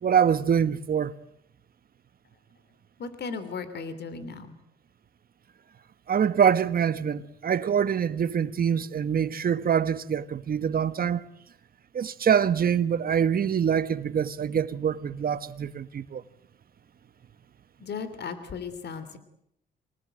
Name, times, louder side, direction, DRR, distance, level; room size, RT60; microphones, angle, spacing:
voice 1, 0.0-1.2 6.1-11.2 11.9-16.2, right 8 dB, 50° right, 1.4 m, -25 dB
voice 2, 3.0-4.5 17.8-19.2, left 5 dB, 55° left, 3.3 m, -36 dB
26.0 x 19.0 x 9.1 m
cardioid pair, 90°, 20 cm